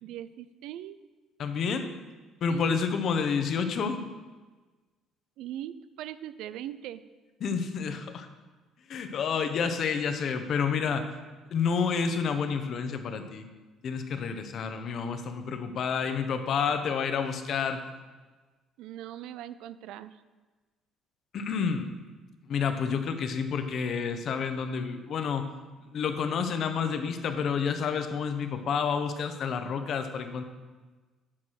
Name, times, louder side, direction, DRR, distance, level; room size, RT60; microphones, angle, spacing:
voice 1, 0.0-1.0 2.5-2.8 5.4-7.0 18.8-20.2, right 12 dB, 80° right, 15 dB, 0.4 m, -40 dB
voice 2, 1.4-1.9 2.4-4.0 7.4-8.3 8.9-11.1 11.5-13.5 13.8-17.8 21.3-21.9 22.5-25.5 25.9-30.4, left 6 dB, 55° left, 8 dB, 0.9 m, -29 dB
9.8 x 4.8 x 6.4 m, 1.3 s
cardioid pair, 115°, 0 cm